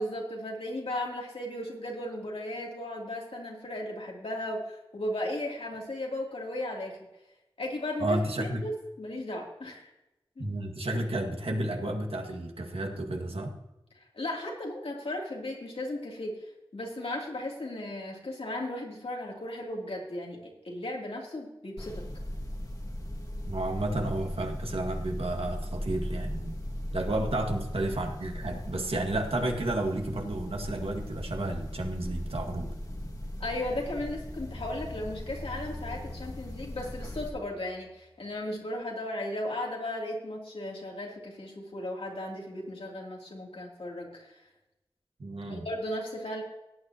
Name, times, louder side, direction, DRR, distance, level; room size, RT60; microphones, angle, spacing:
voice 1, 0.0-7.0 7.6-9.9 10.4-10.5 13.9-16.3 16.7-20.4 20.6-22.0 33.4-44.4 45.5-46.4, left 1 dB, 85° left, -1 dB, 3.0 m, -36 dB
voice 2, 8.0-8.6 10.4-13.6 23.4-26.6 26.9-32.7 45.2-45.7, right 1 dB, 85° right, 2 dB, 1.9 m, -32 dB
sound 1, 21.8-37.3, left 1 dB, 40° left, 1.5 m, -38 dB
sound 2, 34.2-38.3, left 2 dB, 40° right, 2.8 m, -46 dB
17.5 x 9.4 x 2.9 m, 0.95 s
wide cardioid pair, 50°, 10 cm